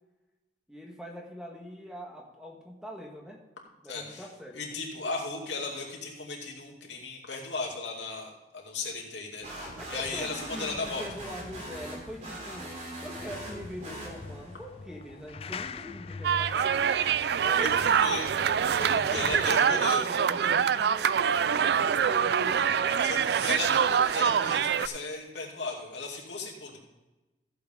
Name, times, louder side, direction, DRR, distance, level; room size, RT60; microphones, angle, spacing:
voice 1, 0.7-3.5 3.8-4.7 9.5-12.7 13.0-16.9 17.4-18.2 19.0-21.1 21.5-22.7, equal, 5° right, 0 dB, 1.5 m, -43 dB
voice 2, 3.9-4.3 4.5-11.0 17.6-17.7 18.0-18.3 18.8-20.0 23.0-26.8, left 3 dB, 85° left, -1 dB, 2.6 m, -36 dB
sound 1, 9.4-14.6, right 1 dB, 40° right, 3.0 m, -41 dB
sound 2, 13.2-19.5, left 4 dB, 35° left, 0.3 m, -43 dB
sound 3, 16.2-24.9, right 7 dB, 60° right, 0.3 m, -25 dB
15.0 x 7.9 x 3.7 m, 1.1 s
head